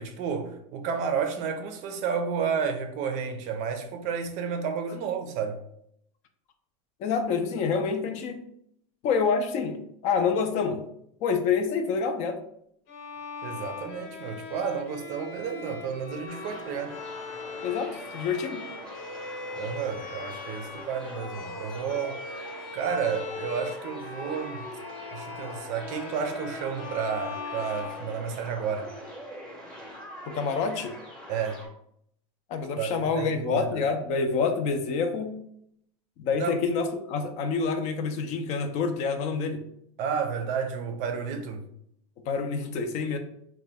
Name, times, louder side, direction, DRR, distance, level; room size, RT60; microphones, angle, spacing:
voice 1, 0.0-5.6 13.4-17.0 19.6-22.2 22.7-24.7 25.1-28.9 31.3-31.6 32.8-33.7 36.4-36.6 40.0-41.6, right 6 dB, 45° right, 0.5 m, -31 dB
voice 2, 7.0-8.4 9.0-10.8 11.2-12.4 17.6-18.6 30.3-31.0 32.5-35.3 36.2-39.6 42.3-43.2, left 5 dB, 40° left, 0.5 m, -27 dB
Bowed string instrument, 12.9-28.7, left 4 dB, 60° left, 0.8 m, -40 dB
sound 1, 16.3-31.7, equal, 5° left, 0.8 m, -43 dB
2.8 x 2.2 x 3.4 m
supercardioid pair, 125°, 17 cm